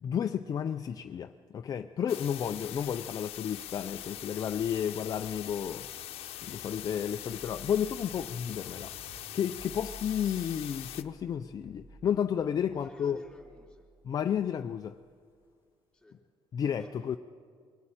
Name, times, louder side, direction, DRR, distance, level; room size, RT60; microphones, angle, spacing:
voice 1, 0.0-5.9 6.4-8.9 9.3-13.2 14.1-15.0 16.5-17.2, left 8 dB, 40° left, 7 dB, 0.5 m, -32 dB
sound 1, 2.1-11.0, left 13 dB, 80° left, 0.8 m, -43 dB
sound 2, 2.4-15.5, right 2 dB, 25° right, 1.0 m, -55 dB
voice 2, 12.7-13.9 15.9-16.2 16.8-17.2, left 1 dB, 5° left, 0 dB, 3.6 m, -54 dB
22.5 x 14.0 x 8.9 m, 2.1 s
cardioid pair, 145°, 10 cm